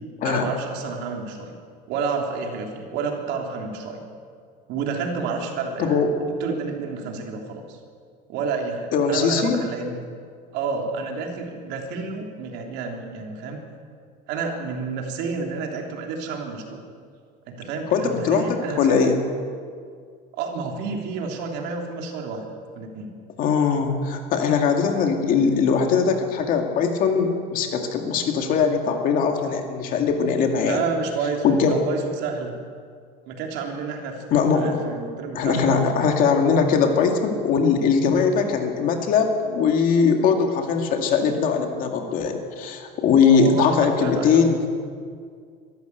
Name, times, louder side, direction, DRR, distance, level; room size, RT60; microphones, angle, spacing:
voice 1, 0.2-1.5 1.9-4.0 4.7-7.8 8.3-10.0 10.5-13.6 14.3-16.8 17.5-19.2 20.4-22.4 22.7-23.1 30.6-32.6 33.3-34.2 34.5-35.9 43.2-44.5, right 4 dB, 55° right, 2 dB, 3.3 m, -30 dB
voice 2, 5.8-6.2 8.9-9.6 17.9-19.2 23.4-30.8 31.4-31.8 34.3-34.8 35.3-44.7, left 5 dB, 40° left, 4 dB, 2.3 m, -21 dB
23.0 x 14.5 x 8.2 m, 2.1 s
cardioid pair, 175°, 21 cm